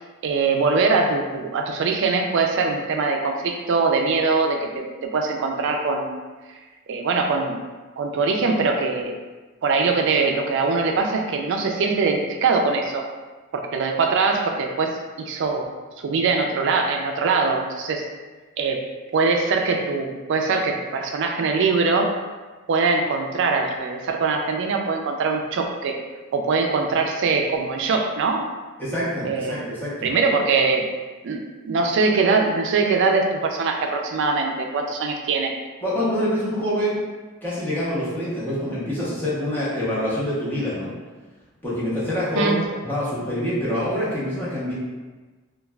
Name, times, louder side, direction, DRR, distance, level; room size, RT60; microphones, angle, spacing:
voice 1, 0.2-6.1 6.9-7.6 8.0-9.1 9.6-13.1 13.5-15.7 16.0-18.1 18.6-18.8 19.1-22.1 22.7-26.0 26.3-28.4 29.3-29.7 30.0-30.9 31.2-31.4 31.6-35.5 42.3-42.6, right 4 dB, 55° right, 3 dB, 0.3 m, -22 dB
voice 2, 28.8-30.1 35.8-37.0 37.4-40.9 41.6-44.7, equal, 10° left, -9 dB, 0.7 m, -26 dB
3.1 x 2.3 x 2.2 m, 1.3 s
head